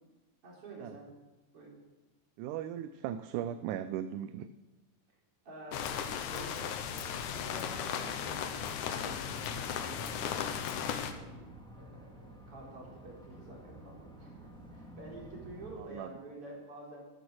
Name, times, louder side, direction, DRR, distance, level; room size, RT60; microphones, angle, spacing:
voice 1, 0.4-1.1 1.5-1.7 5.4-5.9 6.3-10.1 11.1-17.0, right 2 dB, 45° right, -2 dB, 4.6 m, -49 dB
voice 2, 2.4-4.5 15.8-16.1, right 10 dB, 80° right, 11 dB, 2.0 m, -37 dB
sound 1, 5.7-11.1, left 8 dB, 75° left, 2.4 m, -36 dB
sound 2, 9.1-15.8, right 1 dB, ahead, 1.3 m, -51 dB
13.5 x 12.0 x 6.2 m, 1.1 s
omnidirectional pair, 3.8 m